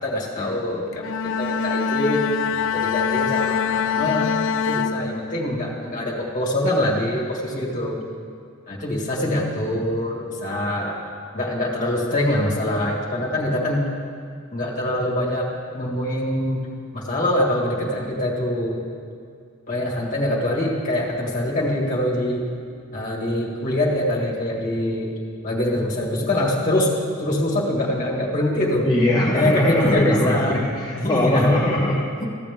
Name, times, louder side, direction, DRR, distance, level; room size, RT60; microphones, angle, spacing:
voice 1, 0.0-1.0 1.4-2.2 2.7-4.3 4.7-8.0 8.7-11.0 11.3-13.9 14.5-16.6 16.9-18.8 19.7-22.4 22.9-25.1 25.4-26.9 27.2-28.9 29.3-30.6 31.0-31.7 32.2-32.3, left 1 dB, 40° left, -4 dB, 1.8 m, -24 dB
Bowed string instrument, 0.9-5.6, left 7 dB, 60° left, 0.3 m, -24 dB
voice 2, 28.8-32.1, left 1 dB, 20° left, -3 dB, 0.6 m, -21 dB
14.5 x 7.4 x 3.6 m, 2.2 s
head